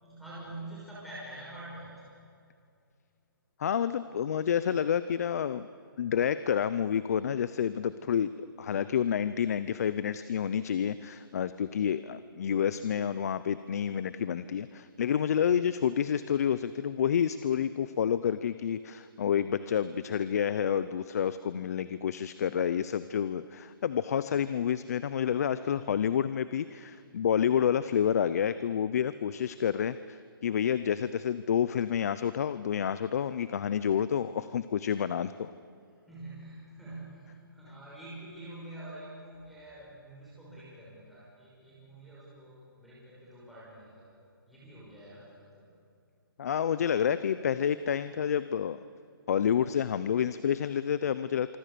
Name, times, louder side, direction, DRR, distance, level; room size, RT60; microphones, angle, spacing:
voice 1, 0.0-2.3 36.1-44.1 44.5-45.6, right 1 dB, ahead, -10 dB, 5.8 m, -46 dB
voice 2, 3.6-5.7 6.0-35.5 46.4-48.8 49.3-51.6, left 8 dB, 45° left, 14 dB, 0.6 m, -29 dB
26.0 x 24.5 x 6.8 m, 2.3 s
hypercardioid pair, 165°, 12 cm